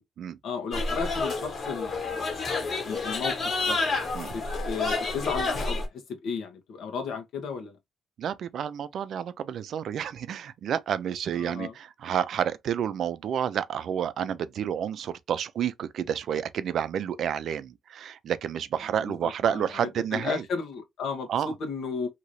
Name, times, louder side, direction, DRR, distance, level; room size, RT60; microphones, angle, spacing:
voice 1, 0.4-2.4 2.8-3.8 4.3-7.8 11.4-11.7 19.1-22.1, left 5 dB, 75° left, 1.0 m, -34 dB
sound 1, 0.7-5.9, left 3 dB, 50° left, 1.6 m, -29 dB
voice 2, 8.2-20.5 21.3-21.5, right 9 dB, 65° right, 0.4 m, -30 dB
2.8 x 2.6 x 3.0 m
cardioid pair, 90°, 0 cm